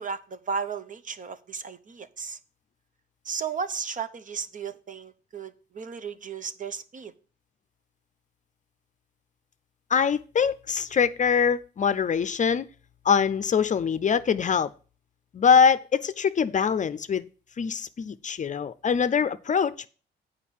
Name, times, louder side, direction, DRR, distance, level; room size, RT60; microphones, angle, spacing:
voice 1, 0.0-2.4 3.2-7.1, right 6 dB, 40° right, 0.9 m, -34 dB
voice 2, 9.9-12.7 13.0-14.7 15.3-17.3 17.6-19.9, left 6 dB, 40° left, 0.6 m, -23 dB
8.3 x 5.0 x 7.3 m
cardioid pair, 90°, 20 cm